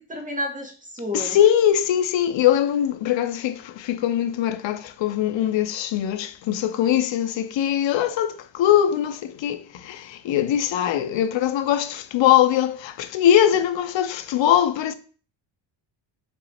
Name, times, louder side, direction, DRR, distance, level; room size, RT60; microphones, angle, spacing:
voice 1, 0.0-1.4, left 1 dB, 15° right, 1.7 m, -31 dB
voice 2, 1.1-14.9, left 10 dB, 70° left, 0.7 m, -21 dB
5.9 x 3.9 x 4.3 m
cardioid pair, 135°, 46 cm